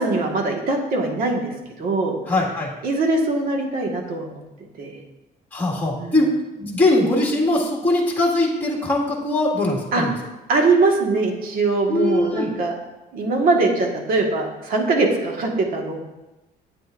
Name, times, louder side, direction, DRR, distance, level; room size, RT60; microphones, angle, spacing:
voice 1, 0.0-1.5 1.8-2.2 2.8-4.4 4.8-5.0 6.0-6.2 9.9-10.0 10.5-12.7 13.1-16.0, right 3 dB, 60° right, 1 dB, 1.7 m, -21 dB
voice 2, 2.3-2.7 5.5-6.3 6.6-10.1 11.9-12.5, left 2 dB, 10° left, -3 dB, 2.0 m, -21 dB
9.4 x 8.7 x 2.6 m, 1.0 s
cardioid pair, 110°, 17 cm